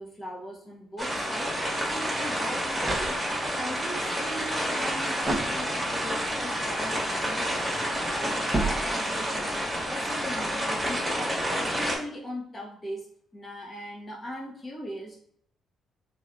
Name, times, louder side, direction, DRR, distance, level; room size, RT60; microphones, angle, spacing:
voice 1, 0.0-7.8 8.1-11.5 11.8-13.1 13.3-15.2, equal, 30° left, -3 dB, 1.3 m, -40 dB
sound 1, 1.0-12.0, equal, 5° right, 1.6 m, -29 dB
sound 2, 2.8-3.7 5.2-6.1 8.5-9.4, right 2 dB, 20° right, 0.9 m, -32 dB
4.0 x 3.3 x 2.5 m, 0.65 s
cardioid pair, 90°, 0 cm